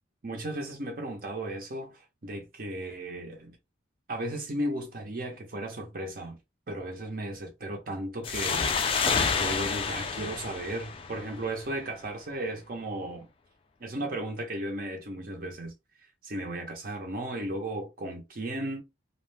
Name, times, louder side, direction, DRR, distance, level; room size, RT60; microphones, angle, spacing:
voice 1, 0.2-3.6 4.1-6.4 6.7-8.7 9.4-13.3 13.8-15.7 16.2-18.8, right 1 dB, 45° right, 0.6 m, -35 dB
sound 1, 8.2-11.6, left 5 dB, 30° left, 0.3 m, -29 dB
2.4 x 2.0 x 3.2 m
head